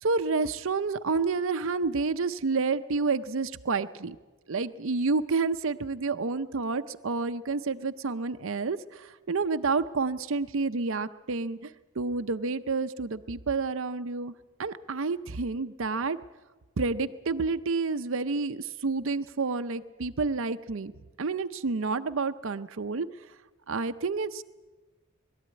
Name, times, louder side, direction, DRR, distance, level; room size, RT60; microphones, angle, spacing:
voice 1, 0.0-4.2 4.5-11.7 12.0-14.3 14.6-16.2 16.8-20.9 21.2-23.1 23.7-24.4, right 4 dB, 65° right, 9 dB, 0.6 m, -29 dB
21.0 x 13.5 x 9.5 m, 1.2 s
head